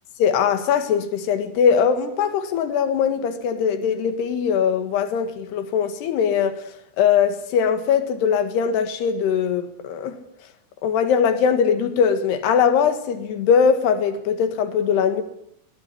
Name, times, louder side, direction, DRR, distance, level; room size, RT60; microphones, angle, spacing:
voice 1, 0.2-6.6 7.0-10.2 10.8-15.2, left 7 dB, 90° left, 3.9 m, -21 dB
22.0 x 21.0 x 9.9 m
omnidirectional pair, 4.6 m